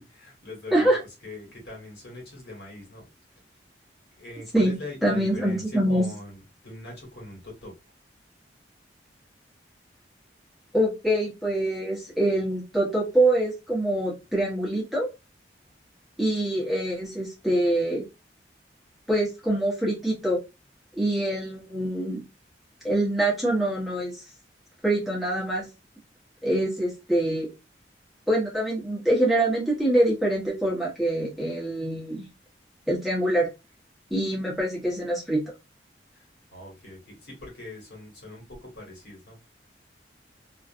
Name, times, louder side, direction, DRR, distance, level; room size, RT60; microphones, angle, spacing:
voice 1, 0.3-0.9 1.2-3.0 4.1-5.6 5.9-6.4 6.6-7.7 36.5-39.4, left 2 dB, 65° left, -1 dB, 1.4 m, -41 dB
voice 2, 5.0-6.1 10.7-15.1 16.2-18.0 19.1-20.4 21.0-22.2 22.8-24.2 24.8-25.7 26.4-27.5 28.3-32.3 32.9-33.5 34.1-35.4, right 1 dB, ahead, -6 dB, 0.9 m, -25 dB
2.5 x 2.3 x 2.5 m, 0.25 s
head